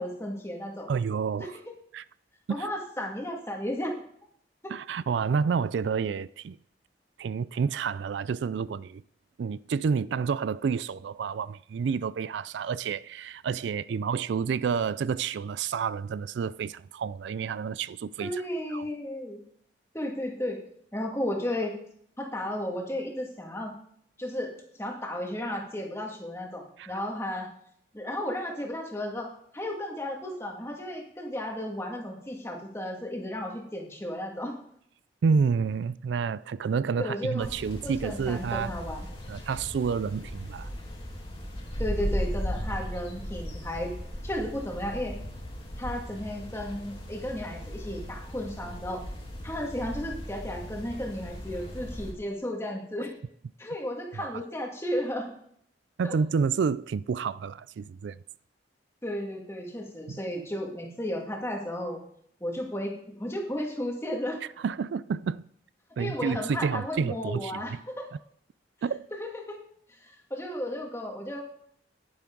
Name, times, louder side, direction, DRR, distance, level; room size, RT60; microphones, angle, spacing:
voice 1, 0.0-0.9 1.4-1.5 2.5-4.0 4.6-4.7 18.2-19.4 19.9-20.6 20.9-21.7 22.2-23.8 24.2-24.5 24.8-27.5 27.9-34.6 37.0-37.5 37.8-39.1 41.8-43.9 44.2-45.2 45.8-49.0 49.4-53.1 53.6-55.3 56.0-56.2 59.0-62.0 62.4-64.4 66.0-68.1 69.2-69.6 69.9-71.4, left 1 dB, 15° left, 2.1 m, -34 dB
voice 2, 0.9-1.5 1.9-2.0 2.5-2.7 4.7-6.6 7.2-9.0 9.4-18.4 18.7-18.8 26.8-26.9 35.2-38.7 39.3-40.7 54.2-54.3 56.0-58.2 60.1-60.2 64.6-65.4 66.0-67.8 68.8-69.1, right 6 dB, 75° right, 0.3 m, -29 dB
sound 1, 37.4-52.1, equal, 30° left, 2.5 m, -37 dB
10.5 x 10.5 x 3.9 m
head